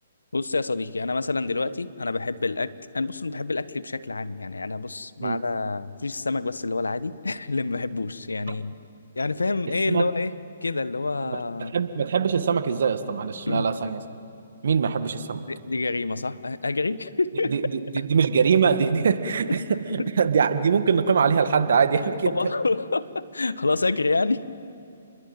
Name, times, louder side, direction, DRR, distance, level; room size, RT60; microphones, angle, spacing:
voice 1, 0.3-8.7 9.2-10.3 10.6-11.8 13.5-13.7 15.5-17.5 20.0-20.1 22.0-24.5, left 3 dB, 85° left, 15 dB, 1.2 m, -27 dB
voice 2, 11.3-14.0 14.6-15.4 17.5-19.6 19.9-22.3, right 6 dB, 65° right, 9 dB, 1.8 m, -23 dB
29.0 x 22.0 x 9.1 m, 2.6 s
figure-of-eight pair, 135°, 0 cm